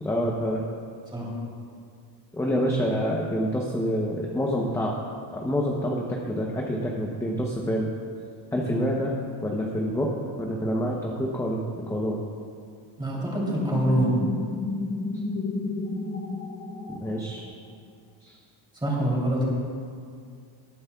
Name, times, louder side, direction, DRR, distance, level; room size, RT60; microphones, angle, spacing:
voice 1, 0.0-0.6 2.3-4.9 5.3-7.9 8.5-9.1 9.4-10.1 10.4-12.2 16.9-17.5 18.2-18.3, equal, 5° left, -1 dB, 0.7 m, -27 dB
voice 2, 13.0-14.1 18.8-19.4, right 1 dB, 10° right, -4 dB, 2.9 m, -25 dB
sound 1, 13.4-17.6, left 3 dB, 25° left, 1.2 m, -32 dB
18.5 x 9.5 x 2.3 m, 2.3 s
cardioid pair, 145°, 48 cm